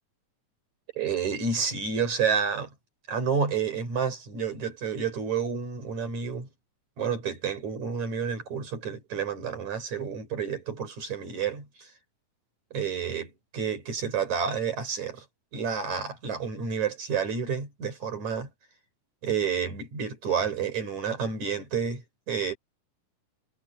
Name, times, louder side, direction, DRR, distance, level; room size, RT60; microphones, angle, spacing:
voice 1, 1.0-2.7 3.1-6.5 7.0-11.9 12.7-15.3 15.5-18.5 19.2-22.6, right 6 dB, 50° right, 6.0 m, -30 dB
omnidirectional pair, 4.1 m